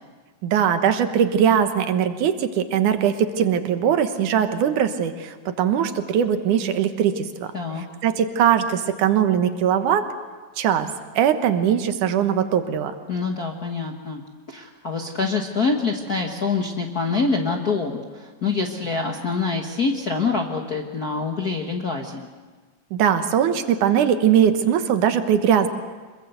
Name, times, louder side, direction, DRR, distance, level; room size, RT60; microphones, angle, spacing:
voice 1, 0.4-7.5 8.0-10.1 10.6-10.9 11.2-12.9 22.9-25.7, right 8 dB, 75° right, 8 dB, 2.7 m, -20 dB
voice 2, 7.5-7.8 13.1-14.2 14.5-22.3, left 4 dB, 45° left, 2 dB, 1.2 m, -25 dB
26.0 x 22.0 x 8.0 m, 1.4 s
omnidirectional pair, 3.6 m